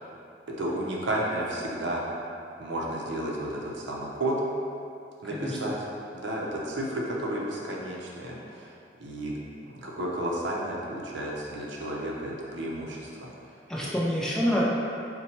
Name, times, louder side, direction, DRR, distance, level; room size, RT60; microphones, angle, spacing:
voice 1, 0.6-2.0 2.6-4.4 5.2-5.7 6.1-8.7 9.0-9.3 9.7-13.3 13.8-13.9, right 1 dB, 75° right, -3 dB, 0.6 m, -32 dB
voice 2, 5.3-5.7 13.7-14.6, equal, 5° left, -6 dB, 0.5 m, -27 dB
4.2 x 2.2 x 4.2 m, 2.6 s
head